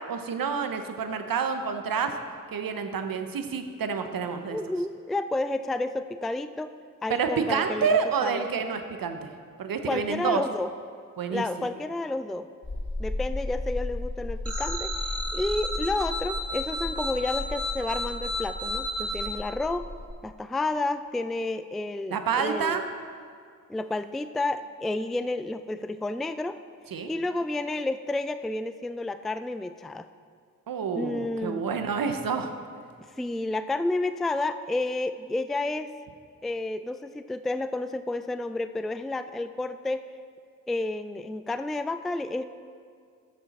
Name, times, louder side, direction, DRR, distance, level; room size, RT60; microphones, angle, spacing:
voice 1, 0.1-2.1 2.5-4.6 7.1-9.3 9.6-10.4 11.2-11.4 22.1-22.8 26.9-27.1 30.7-32.5, right 6 dB, 85° right, 7 dB, 0.8 m, -28 dB
voice 2, 4.5-6.7 7.0-8.4 9.9-10.7 11.3-12.5 13.0-14.9 15.3-19.9 20.2-22.9 23.7-26.6 27.1-30.1 30.9-31.6 33.2-35.9 36.4-40.1 40.7-42.4, left 2 dB, ahead, 11 dB, 0.3 m, -30 dB
sound 1, 12.6-20.1, left 1 dB, 35° left, 1.7 m, -35 dB
sound 2, 14.4-19.3, left 1 dB, 45° right, 1.6 m, -32 dB
13.5 x 6.6 x 4.1 m, 2.2 s
cardioid pair, 50°, 34 cm